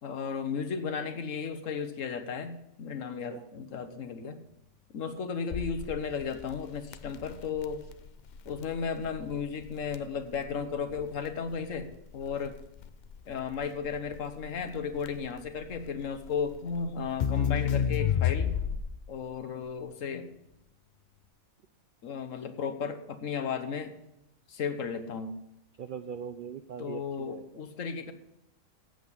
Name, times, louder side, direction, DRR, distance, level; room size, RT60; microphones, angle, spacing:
voice 1, 0.0-4.4 4.9-7.8 8.5-12.6 13.3-18.8 19.1-20.3 22.0-24.0 24.5-25.3 26.8-28.1, left 6 dB, 70° left, 9 dB, 1.3 m, -34 dB
Crackle, 5.5-19.1, left 8 dB, 85° left, 0.4 m, -33 dB
voice 2, 25.8-27.7, right 7 dB, 70° right, 10 dB, 0.4 m, -41 dB
8.2 x 8.1 x 7.2 m, 0.83 s
omnidirectional pair, 1.4 m